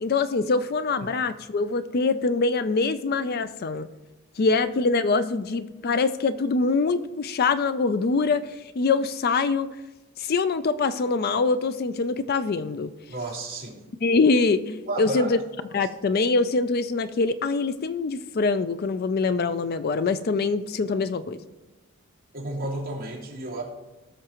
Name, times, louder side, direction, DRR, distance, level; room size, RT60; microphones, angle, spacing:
voice 1, 0.0-3.9 4.4-9.7 10.2-12.9 14.0-15.4 15.7-21.4, left 4 dB, 45° left, 12 dB, 0.4 m, -24 dB
voice 2, 13.1-13.8 14.9-15.3 22.3-23.6, right 2 dB, 40° right, -5 dB, 3.1 m, -32 dB
19.5 x 6.6 x 3.0 m, 1.1 s
head